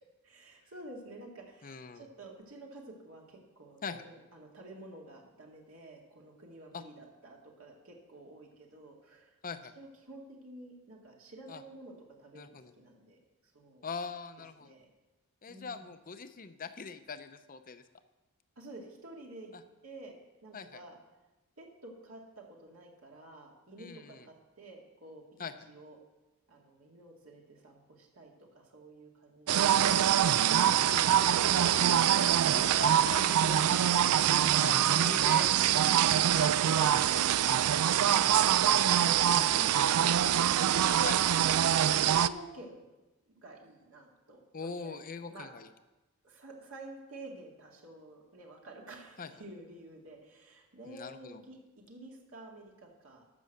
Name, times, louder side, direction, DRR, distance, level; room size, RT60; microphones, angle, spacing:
voice 1, 0.2-9.3 9.8-13.2 13.5-13.9 14.6-14.9 15.5-15.9 18.6-19.5 19.8-20.1 20.4-21.0 21.6-26.0 26.5-30.1 39.5-40.3 40.8-41.0 42.0-42.8 43.3-45.5 46.2-53.2, right 1 dB, 65° right, -1 dB, 2.1 m, -50 dB
voice 2, 1.6-2.1 3.8-4.0 6.7-6.8 9.4-9.7 11.5-11.6 12.3-12.7 13.8-14.7 15.4-17.8 19.5-19.6 20.5-20.8 23.8-24.2 25.4-25.5 29.5-30.0 30.8-35.5 36.2-38.4 39.9-41.2 44.5-45.7 49.2-49.3 50.9-51.4, left 5 dB, 40° left, 10 dB, 0.7 m, -43 dB
sound 1, 29.5-42.3, right 10 dB, 80° right, 0.4 m, -25 dB
13.5 x 6.2 x 6.6 m, 1.1 s
head